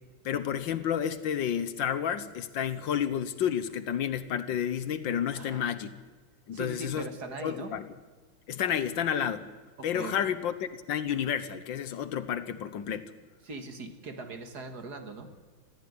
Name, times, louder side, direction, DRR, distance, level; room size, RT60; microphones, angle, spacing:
voice 1, 0.2-6.0 6.5-7.0 7.4-7.9 8.5-9.5 9.8-13.1, left 9 dB, 70° left, 13 dB, 1.7 m, -30 dB
voice 2, 5.4-5.7 6.5-7.8 9.8-10.3 13.4-15.3, right 3 dB, 55° right, 7 dB, 2.2 m, -40 dB
21.0 x 14.5 x 9.7 m, 1.4 s
omnidirectional pair, 2.2 m